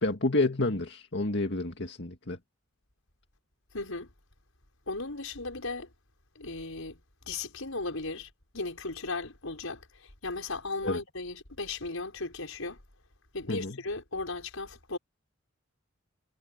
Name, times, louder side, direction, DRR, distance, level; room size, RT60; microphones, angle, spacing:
voice 1, 0.0-2.4 10.8-11.0 13.5-13.8, left 2 dB, 60° left, 2.0 m, -29 dB
voice 2, 3.7-4.1 4.9-5.9 6.4-7.0 7.3-12.8 13.3-15.0, left 3 dB, 80° left, 5.5 m, -36 dB
head